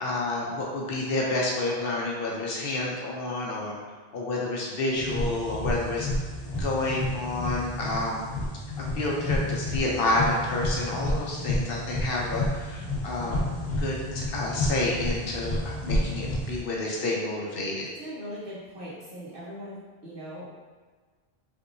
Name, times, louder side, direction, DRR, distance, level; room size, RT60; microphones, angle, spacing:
voice 1, 0.0-3.7 4.1-6.1 6.6-8.3 8.8-13.4 13.8-17.9, left 2 dB, 65° left, -3 dB, 0.8 m, -29 dB
voice 2, 4.9-5.3 12.7-13.0 18.0-20.6, equal, 60° right, -9 dB, 1.3 m, -41 dB
sound 1, 5.0-16.6, left 1 dB, 90° left, 1.2 m, -30 dB
3.4 x 2.7 x 2.6 m, 1.4 s
omnidirectional pair, 1.1 m